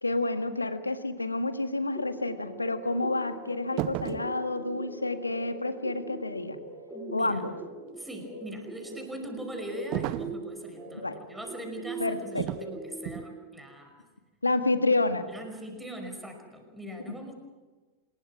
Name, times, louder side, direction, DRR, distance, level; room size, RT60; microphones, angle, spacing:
voice 1, 0.0-6.6 7.1-7.5 10.9-11.2 12.0-12.5 14.4-15.3 17.1-17.3, left 2 dB, 80° left, 9 dB, 1.7 m, -29 dB
sound 1, 1.9-13.2, right 2 dB, 20° right, 4.1 m, -42 dB
sound 2, 3.8-4.3 9.9-10.4 12.4-12.7 13.0-13.3, right 16 dB, 40° right, 0.8 m, -33 dB
voice 2, 6.9-7.4 7.9-13.9 15.3-17.3, equal, 5° right, 4 dB, 5.5 m, -41 dB
26.5 x 21.0 x 6.2 m, 1.3 s
figure-of-eight pair, 90°, 0 cm